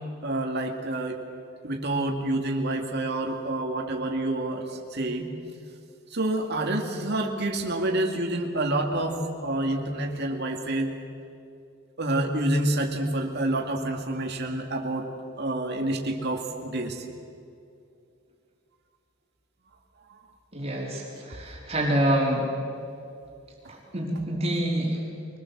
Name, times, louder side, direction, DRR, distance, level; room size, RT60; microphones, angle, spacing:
voice 1, 0.2-1.2 1.6-4.6 4.9-5.3 6.1-10.9 12.0-15.0 15.4-17.0, right 1 dB, 45° right, 2 dB, 2.4 m, -28 dB
voice 2, 20.5-22.5 23.7-25.0, right 1 dB, 25° right, -2 dB, 4.0 m, -27 dB
24.0 x 20.0 x 7.5 m, 2.5 s
head